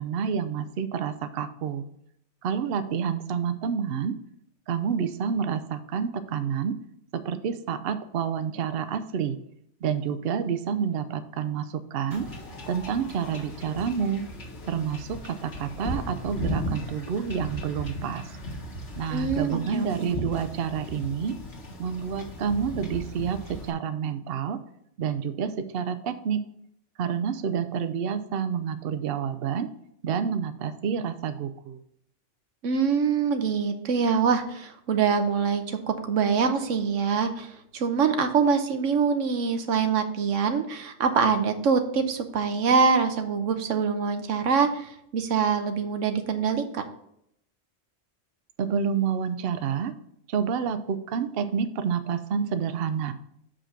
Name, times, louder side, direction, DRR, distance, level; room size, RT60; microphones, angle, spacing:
voice 1, 0.0-1.9 2.4-4.2 4.7-6.8 7.1-9.4 9.8-12.3 12.7-14.2 14.6-18.4 19.0-21.3 21.8-24.6 25.0-26.4 27.0-29.7 30.0-31.8 48.6-49.9 50.3-53.1, right 7 dB, 60° right, 10 dB, 0.7 m, -28 dB
Wind / Ocean / Boat Water vehicle, 12.1-23.7, equal, 60° left, 1.8 m, -37 dB
voice 2, 19.1-20.1 32.6-46.8, right 6 dB, 85° right, 7 dB, 1.2 m, -24 dB
6.5 x 5.1 x 5.7 m, 0.73 s
omnidirectional pair, 1.3 m